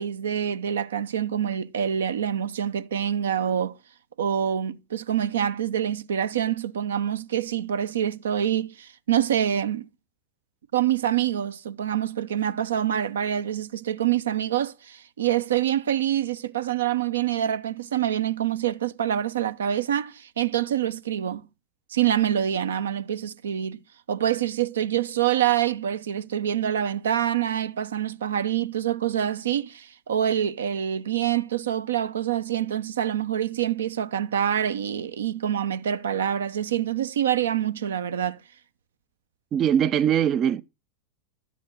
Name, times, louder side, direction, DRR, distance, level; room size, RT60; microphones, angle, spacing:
voice 1, 0.0-3.8 4.2-9.8 10.7-21.5 21.9-23.8 24.1-38.4, right 10 dB, 65° right, 0.8 m, -26 dB
voice 2, 39.5-40.6, right 9 dB, 30° right, 0.5 m, -21 dB
12.5 x 7.2 x 6.2 m
figure-of-eight pair, 90°, 0 cm